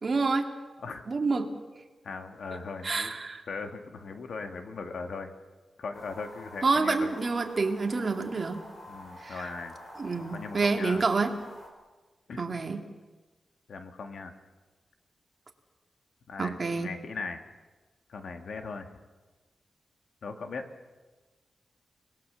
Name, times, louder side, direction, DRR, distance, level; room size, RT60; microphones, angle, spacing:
voice 1, 0.0-0.5 1.1-1.5 2.8-3.4 6.6-8.6 9.2-9.4 10.0-11.3 12.4-12.8 16.4-16.9, right 4 dB, 40° right, 4 dB, 2.2 m, -28 dB
voice 2, 2.0-3.1 3.5-5.3 5.8-7.1 8.9-9.8 10.1-11.0 12.3-12.4 13.7-14.3 16.3-17.4 18.1-19.0 20.2-20.7, left 4 dB, 70° left, 6 dB, 2.1 m, -39 dB
sound 1, 5.9-11.7, left 1 dB, 45° left, 6.0 m, -48 dB
29.5 x 20.0 x 7.1 m, 1.3 s
wide cardioid pair, 150°, 0 cm